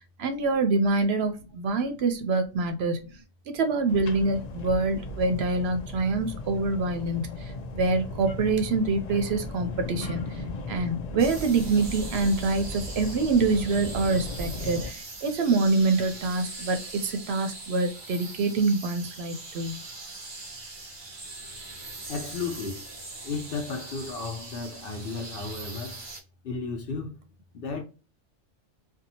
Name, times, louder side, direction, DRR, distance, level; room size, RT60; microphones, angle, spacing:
voice 1, 0.2-3.1 3.5-10.4 10.7-19.8, right 3 dB, 65° right, 0.7 m, -26 dB
sound 1, 3.9-14.9, left 2 dB, 80° left, 0.3 m, -37 dB
sound 2, 11.2-26.2, right 2 dB, 35° right, 0.4 m, -42 dB
voice 2, 22.1-22.9 23.2-26.0 26.4-27.3 27.5-27.8, left 4 dB, 60° left, 0.7 m, -34 dB
2.7 x 2.3 x 2.7 m
omnidirectional pair, 1.2 m